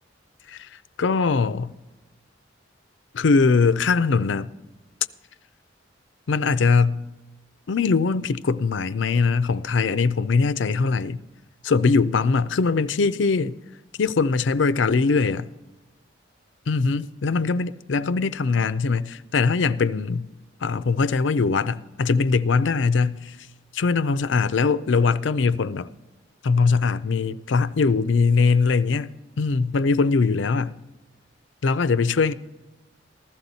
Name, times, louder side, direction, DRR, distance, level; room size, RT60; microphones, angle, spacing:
voice 1, 0.5-1.7 3.1-4.5 6.3-7.0 7.7-11.2 11.6-13.6 14.0-15.5 16.7-20.3 20.6-23.4 23.7-25.9 26.4-29.1 29.4-30.8 31.6-32.3, left 4 dB, 75° left, 0.5 m, -21 dB
15.5 x 13.0 x 4.1 m
head